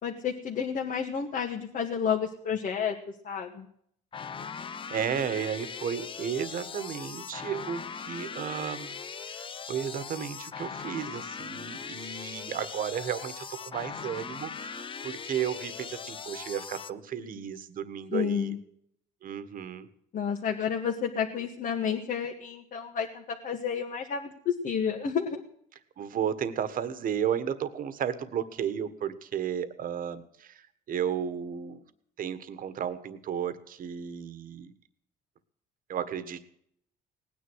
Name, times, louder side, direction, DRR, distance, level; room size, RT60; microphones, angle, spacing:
voice 1, 0.0-3.0 3.2-3.7 18.1-18.6 20.1-25.4, left 7 dB, 55° left, 1 dB, 2.1 m, -30 dB
sound 1, 4.1-16.9, left 6 dB, 30° left, 0.7 m, -40 dB
voice 2, 4.9-9.0 9.2-18.5 19.2-19.9 26.0-31.8 32.2-34.7 35.9-36.4, right 8 dB, 55° right, 12 dB, 1.5 m, -33 dB
18.5 x 10.0 x 6.4 m, 0.69 s
cardioid pair, 110°, 17 cm